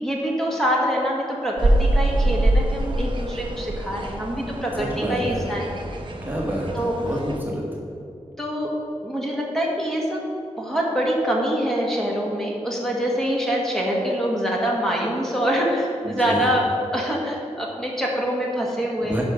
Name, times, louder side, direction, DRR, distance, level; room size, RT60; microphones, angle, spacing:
voice 1, 0.0-5.7 6.7-7.1 8.4-8.7 9.0-10.2 10.6-16.7 16.9-19.2, equal, 5° left, -3 dB, 1.8 m, -25 dB
sound 1, 1.6-7.4, right 1 dB, 45° right, 1.0 m, -24 dB
voice 2, 4.8-5.5 6.2-6.7 7.0-7.6 16.0-16.5 19.0-19.2, right 1 dB, 15° right, -3 dB, 1.7 m, -28 dB
10.5 x 6.1 x 5.2 m, 2.7 s
wide cardioid pair, 80°, 12 cm